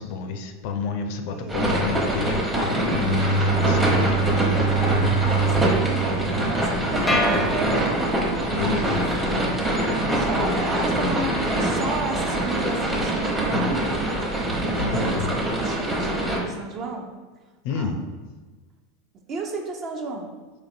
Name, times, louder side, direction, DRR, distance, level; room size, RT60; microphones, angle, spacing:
voice 1, 0.0-4.8 7.1-7.6 8.5-9.6 14.7-14.9 17.6-18.0, left 5 dB, 65° left, 6 dB, 0.4 m, -30 dB
voice 2, 1.3-1.7 4.7-8.0 8.4-9.5 10.1-17.1 17.7-17.9 19.3-20.3, right 3 dB, 40° right, 3 dB, 0.6 m, -33 dB
sound 1, 1.5-16.4, right 1 dB, 15° right, 0.9 m, -24 dB
Bowed string instrument, 2.7-8.0, right 4 dB, 75° right, 0.9 m, -25 dB
sound 2, 7.1-8.4, left 1 dB, 5° left, 0.6 m, -26 dB
4.0 x 2.9 x 2.7 m, 1.3 s
hypercardioid pair, 105°, 0 cm